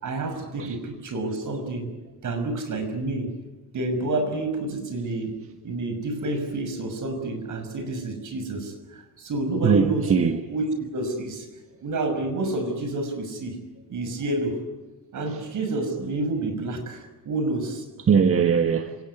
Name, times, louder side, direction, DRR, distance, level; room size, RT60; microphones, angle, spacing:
voice 1, 0.0-1.9 2.2-3.4 3.7-5.3 5.6-10.1 10.5-11.5 11.8-13.6 13.9-14.6 15.1-17.8, right 2 dB, 65° right, 6.1 m, -29 dB
voice 2, 9.6-10.4 15.3-15.4 18.0-19.0, right 6 dB, 45° right, 1.5 m, -21 dB
26.5 x 18.0 x 9.8 m
cardioid pair, 105°, 33 cm